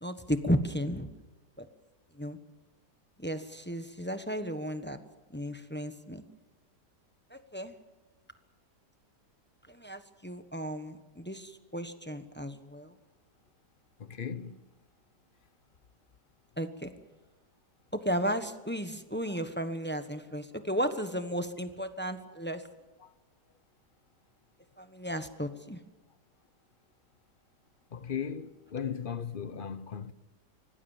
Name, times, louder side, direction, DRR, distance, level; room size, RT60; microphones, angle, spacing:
voice 1, 0.0-1.1 1.6-1.7 2.2-2.4 3.2-5.0 5.3-6.2 7.3-7.7 9.7-12.9 16.6-16.9 17.9-22.6 24.8-25.8, equal, 10° left, 1.0 m, -34 dB
voice 2, 14.0-14.6 27.9-30.1, left 7 dB, 40° left, 0.8 m, -37 dB
25.5 x 18.5 x 7.3 m
omnidirectional pair, 1.8 m